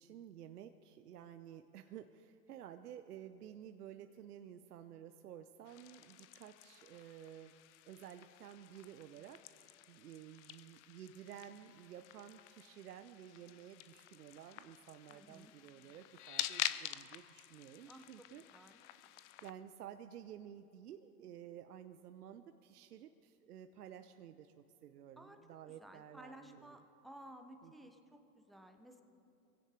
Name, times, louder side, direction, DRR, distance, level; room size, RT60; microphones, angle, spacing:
voice 1, 0.0-7.5 7.9-18.4 19.4-26.8 27.6-27.9, right 10 dB, 70° right, 9 dB, 0.8 m, -53 dB
sound 1, 5.7-19.5, left 13 dB, 50° left, 0.7 m, -47 dB
voice 2, 15.1-15.5 17.8-18.3 18.5-18.8 25.2-29.0, right 1 dB, ahead, 5 dB, 0.4 m, -56 dB
23.5 x 16.0 x 3.3 m, 2.7 s
hypercardioid pair, 110°, 47 cm